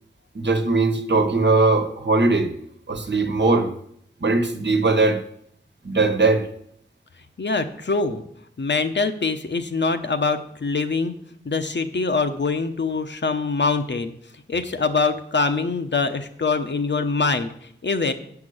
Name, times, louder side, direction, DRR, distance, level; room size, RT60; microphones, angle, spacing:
voice 1, 0.3-2.5 2.9-3.7 4.2-5.2 5.8-6.5, right 3 dB, 65° right, 7 dB, 1.2 m, -20 dB
voice 2, 7.4-8.2 8.6-11.1 11.4-14.1 14.5-17.5 17.8-18.1, left 4 dB, 65° left, 8 dB, 0.9 m, -24 dB
7.9 x 5.9 x 7.9 m, 0.69 s
wide cardioid pair, 50°, 20 cm